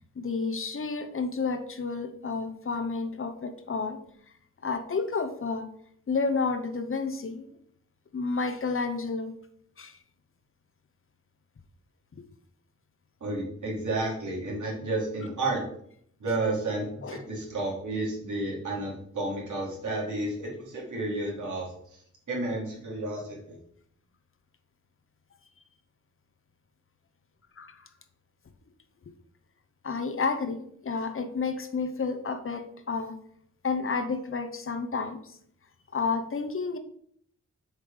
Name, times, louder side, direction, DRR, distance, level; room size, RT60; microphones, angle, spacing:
voice 1, 0.2-4.0 4.6-5.7 6.1-7.5 8.1-9.3 9.8-10.0 12.2-12.3 17.0-17.2 27.6-27.8 29.8-33.2 33.6-35.4 35.9-36.8, left 4 dB, 45° left, 8 dB, 0.9 m, -30 dB
voice 2, 13.2-15.6 16.2-22.0 22.3-23.6, right 2 dB, 80° right, -4 dB, 3.3 m, -31 dB
7.6 x 5.1 x 5.1 m, 0.67 s
wide cardioid pair, 150°, 30 cm